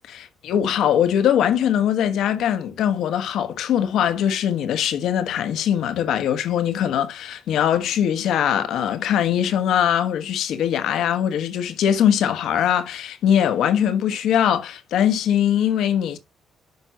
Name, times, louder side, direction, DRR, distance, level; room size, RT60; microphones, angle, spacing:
voice 1, 0.1-16.2, left 9 dB, 75° left, 1.2 m, -21 dB
10.5 x 5.7 x 2.8 m
cardioid pair, 80°, 0 cm